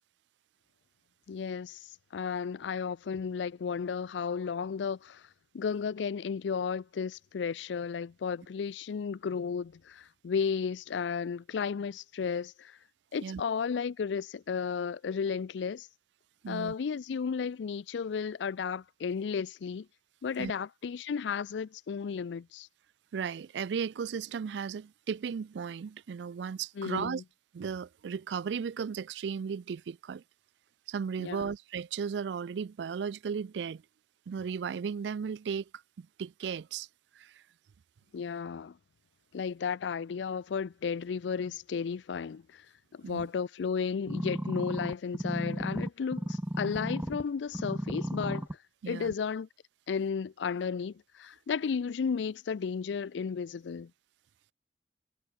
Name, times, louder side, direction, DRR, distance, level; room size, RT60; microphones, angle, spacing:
voice 1, 1.3-1.8 2.1-5.2 5.5-12.8 13.1-15.9 16.5-19.9 20.2-22.7 26.8-27.2 31.2-31.5 38.1-38.8 39.3-42.7 42.9-48.5 48.9-49.5 49.9-53.9, left 6 dB, 85° left, 0.4 m, -33 dB
voice 2, 16.4-16.7 20.4-20.5 23.1-27.2 27.5-30.2 30.9-33.8 34.3-35.6 36.0-36.9 37.2-37.4 43.0-43.3 48.8-49.1, right 6 dB, 75° right, 0.4 m, -35 dB
sound 1, 44.1-47.2 47.5-48.5 49.1-49.2, equal, 10° right, 0.9 m, -34 dB
head